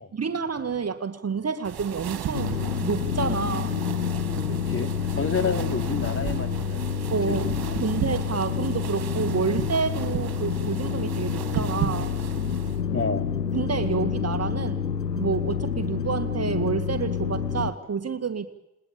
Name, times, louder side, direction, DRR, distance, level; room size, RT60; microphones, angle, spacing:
voice 1, 0.1-3.7 7.1-7.5 7.8-12.2 13.5-14.9 15.1-18.5, right 5 dB, 30° right, 10 dB, 2.1 m, -29 dB
sound 1, 1.6-12.8, right 9 dB, 50° right, 2.8 m, -35 dB
sound 2, 2.3-17.7, left 7 dB, 90° left, 1.0 m, -28 dB
voice 2, 4.5-6.9 7.4-7.8 12.9-13.3, left 5 dB, 25° left, 8 dB, 3.5 m, -30 dB
29.5 x 21.0 x 8.8 m, 0.92 s
figure-of-eight pair, 45°, 47 cm